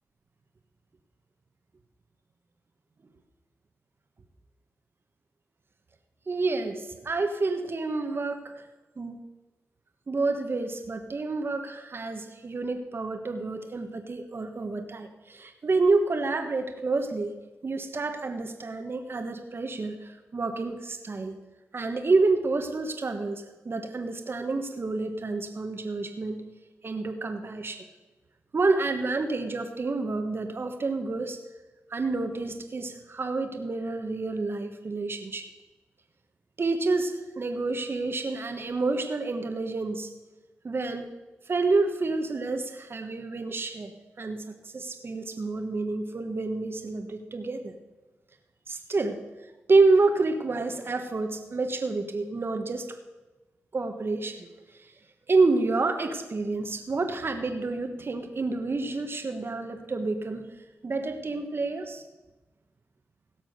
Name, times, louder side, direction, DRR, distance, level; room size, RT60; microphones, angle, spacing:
voice 1, 6.3-8.6 9.0-9.2 10.1-17.3 17.6-21.4 21.7-26.4 26.8-27.8 28.5-31.4 31.9-35.5 36.6-40.1 40.6-41.1 41.5-43.9 44.2-47.7 48.7-49.2 49.7-52.9 53.7-54.9 55.3-60.5 60.8-62.0, right 3 dB, 50° right, 6 dB, 1.3 m, -28 dB
16.5 x 6.2 x 6.6 m, 1.1 s
cardioid pair, 60°, 5 cm